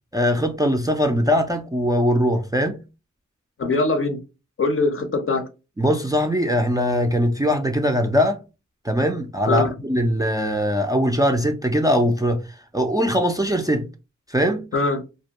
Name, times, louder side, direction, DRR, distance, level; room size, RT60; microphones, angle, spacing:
voice 1, 0.1-2.8 5.8-8.4 8.8-12.4 12.7-13.8 14.3-14.6, equal, 15° right, 0.3 m, -21 dB
voice 2, 3.6-4.2 4.6-5.4 9.5-9.7 14.7-15.0, left 3 dB, 45° left, 0.6 m, -22 dB
2.5 x 2.1 x 2.8 m
wide cardioid pair, 75°, 29 cm